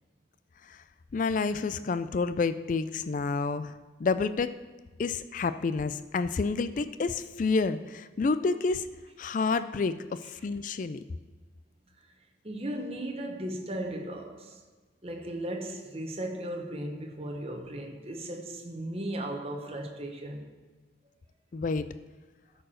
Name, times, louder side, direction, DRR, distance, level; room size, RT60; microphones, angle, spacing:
voice 1, 1.1-3.7 4.0-4.5 5.0-8.9 9.2-11.0 21.5-21.8, left 4 dB, 45° left, 0.3 m, -29 dB
voice 2, 12.4-14.6 15.0-20.5, right 1 dB, 30° right, 1.0 m, -36 dB
13.0 x 4.7 x 6.3 m
head